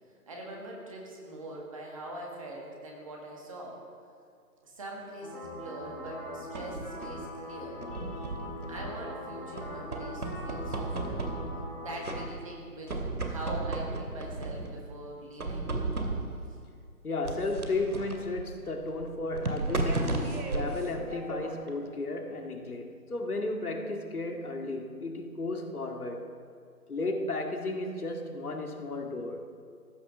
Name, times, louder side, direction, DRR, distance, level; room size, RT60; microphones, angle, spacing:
voice 1, 0.3-3.8 4.6-7.8 8.7-11.2 11.8-15.7, right 1 dB, 20° right, -1 dB, 1.7 m, -43 dB
sound 1, 5.2-12.1, left 1 dB, 5° left, 1.6 m, -42 dB
sound 2, 6.1-7.3 7.8-9.2 9.6-11.7 12.0-12.6 12.9-14.8 15.4-16.5 17.2-21.7, right 2 dB, 65° right, 2.4 m, -35 dB
voice 2, 17.0-26.3 26.9-29.5, left 2 dB, 65° left, 3 dB, 2.1 m, -34 dB
15.5 x 11.5 x 6.4 m, 2.2 s
figure-of-eight pair, 160°, 47 cm